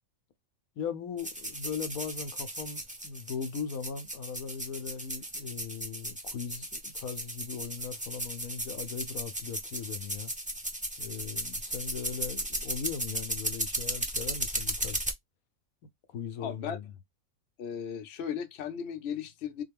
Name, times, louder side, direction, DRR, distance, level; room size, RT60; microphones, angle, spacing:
voice 1, 0.8-10.3 11.0-15.0 16.1-16.9, left 6 dB, 75° left, 1.1 m, -39 dB
sound 1, 1.2-15.1, right 1 dB, 15° right, 0.3 m, -36 dB
voice 2, 16.4-16.8 17.6-19.6, left 8 dB, 55° left, 0.8 m, -36 dB
3.8 x 2.2 x 3.4 m
omnidirectional pair, 1.5 m